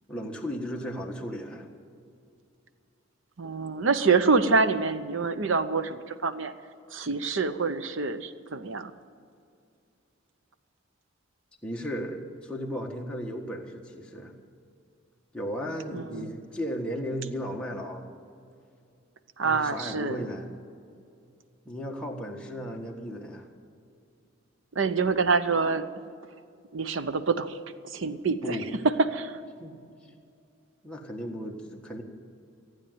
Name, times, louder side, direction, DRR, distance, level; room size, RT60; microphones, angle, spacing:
voice 1, 0.1-1.7 11.6-14.3 15.3-18.1 19.4-20.5 21.6-23.5 28.4-28.7 29.6-29.8 30.0-30.1 30.8-32.0, equal, 5° left, -1 dB, 1.5 m, -35 dB
voice 2, 3.4-6.5 6.9-8.9 15.9-16.3 19.4-20.2 24.8-25.8 26.7-27.6 27.9-28.6 28.8-29.4, right 4 dB, 70° right, 12 dB, 0.7 m, -26 dB
15.5 x 9.2 x 9.3 m, 2.4 s
head